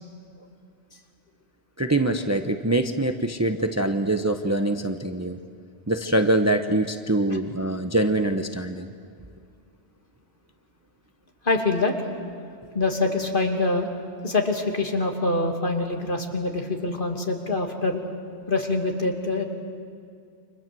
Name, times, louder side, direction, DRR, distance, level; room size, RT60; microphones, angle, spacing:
voice 1, 1.8-5.4 5.9-8.9 12.7-12.8, right 1 dB, 15° right, 6 dB, 1.0 m, -24 dB
voice 2, 11.4-11.9 12.7-13.9 14.2-18.0 18.5-19.4, left 2 dB, 50° left, 2 dB, 2.7 m, -25 dB
30.0 x 25.5 x 7.7 m, 2.3 s
omnidirectional pair, 1.1 m